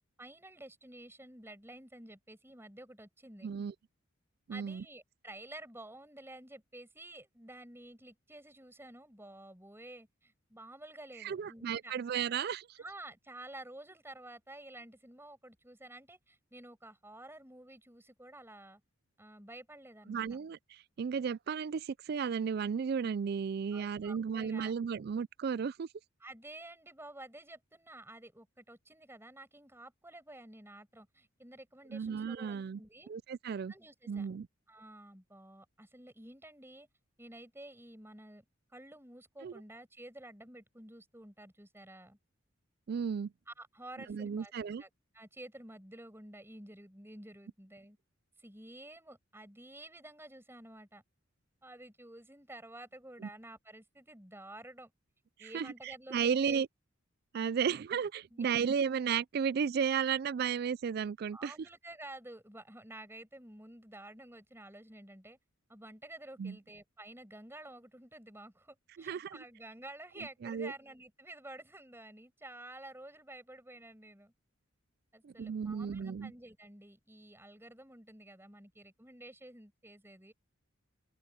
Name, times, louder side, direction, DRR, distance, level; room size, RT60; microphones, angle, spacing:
voice 1, 0.2-3.5 4.5-11.9 12.8-18.8 19.2-20.3 23.7-24.7 26.2-33.1 33.7-34.3 34.7-36.9 37.2-38.4 38.7-42.2 43.5-44.5 44.8-44.9 45.1-48.0 48.4-51.0 51.6-54.9 55.4-56.6 57.5-57.8 58.3-58.7 61.3-65.4 65.7-74.3 75.1-80.3, right 1 dB, 10° right, 6.7 m, -51 dB
voice 2, 3.4-3.7 4.5-4.8 11.2-12.7 20.1-25.9 31.9-32.8 33.1-33.7 34.1-34.5 39.4-39.5 42.9-43.3 44.1-44.8 53.2-53.3 55.4-56.7 57.3-61.5 66.4-66.6 69.0-69.4 70.2-70.7 75.2-76.3, right 7 dB, 50° right, 0.3 m, -34 dB
open air
head